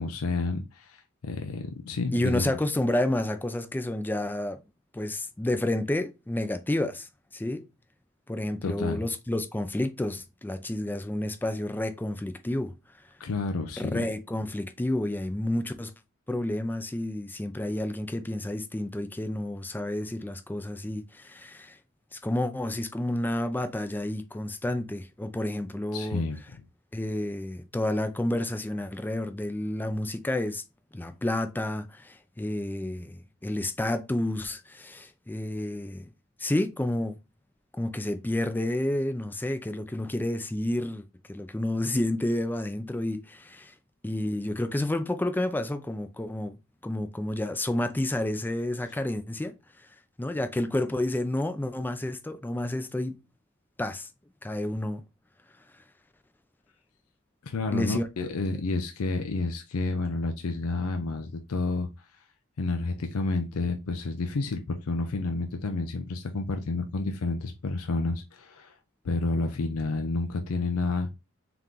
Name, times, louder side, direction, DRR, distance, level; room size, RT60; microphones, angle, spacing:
voice 1, 0.0-2.5 8.6-9.0 13.2-14.0 25.9-26.4 57.4-61.9 62.6-68.8 69.0-71.1, left 3 dB, 85° left, 0.5 m, -30 dB
voice 2, 2.1-4.6 4.9-7.6 8.3-12.7 13.8-15.9 16.3-21.8 22.1-26.2 26.9-30.6 30.9-36.1 36.4-37.2 37.8-43.7 44.0-46.6 46.8-49.5 50.2-53.2 53.8-54.1 54.4-55.0 57.7-58.1, left 1 dB, 10° left, 0.4 m, -30 dB
3.8 x 2.9 x 3.5 m
head